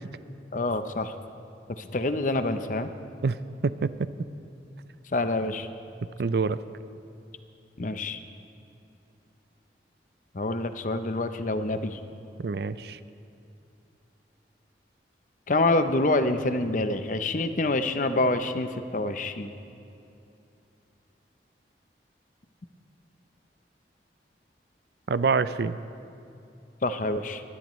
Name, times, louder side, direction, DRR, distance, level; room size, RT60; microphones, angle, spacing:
voice 1, 0.5-1.1 1.8-2.9 5.1-5.7 7.8-8.2 10.3-12.0 15.5-19.5 26.8-27.4, left 2 dB, 45° left, 9 dB, 0.7 m, -26 dB
voice 2, 6.2-6.6 12.4-13.0 25.1-25.8, right 4 dB, 60° right, 15 dB, 0.4 m, -26 dB
22.5 x 17.0 x 3.2 m, 2.7 s
head